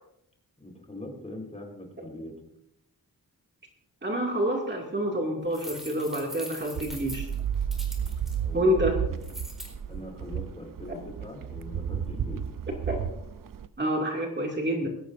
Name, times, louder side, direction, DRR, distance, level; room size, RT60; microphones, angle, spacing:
voice 1, 0.6-2.3 8.4-9.2 9.9-12.4, left 1 dB, 20° left, 2 dB, 4.2 m, -42 dB
voice 2, 4.0-7.3 8.5-8.9 12.9-13.0 13.8-14.9, equal, 30° right, 0 dB, 2.4 m, -27 dB
sound 1, 5.5-8.3 9.2-9.7, equal, ahead, 4.2 m, -42 dB
sound 2, 6.7-13.7, right 8 dB, 65° right, 0.7 m, -33 dB
21.0 x 17.0 x 2.6 m, 0.77 s
wide cardioid pair, 130°, 36 cm